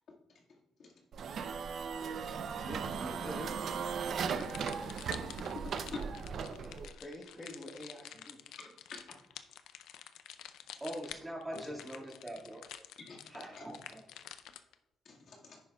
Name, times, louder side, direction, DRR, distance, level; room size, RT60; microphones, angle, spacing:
sound 1, 1.1-6.9, right 6 dB, 60° right, 0.6 m, -37 dB
voice 1, 2.5-5.5 6.6-8.4, left 1 dB, 15° left, -1 dB, 1.4 m, -48 dB
sound 2, 4.3-14.7, left 10 dB, 85° left, 0.5 m, -49 dB
voice 2, 5.5-6.0 6.4-6.6 8.6-9.2 11.5-11.6 13.0-13.2 13.6-13.7 15.1-15.6, left 4 dB, 60° left, -2 dB, 1.9 m, -47 dB
voice 3, 10.8-12.6 13.2-14.0, right 1 dB, 15° right, -3 dB, 2.0 m, -43 dB
10.5 x 9.4 x 2.3 m, 1.0 s
cardioid pair, 90°, 0 cm